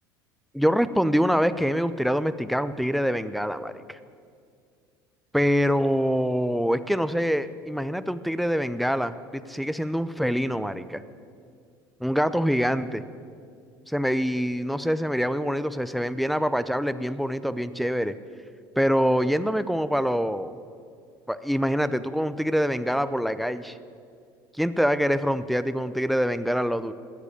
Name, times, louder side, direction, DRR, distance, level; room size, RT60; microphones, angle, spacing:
voice 1, 0.5-4.0 5.3-11.0 12.0-13.0 13.9-18.1 18.8-20.5 21.3-23.8 24.6-26.9, equal, ahead, 13 dB, 0.7 m, -25 dB
20.5 x 8.2 x 8.6 m, 2.3 s
hypercardioid pair, 65°, 12 cm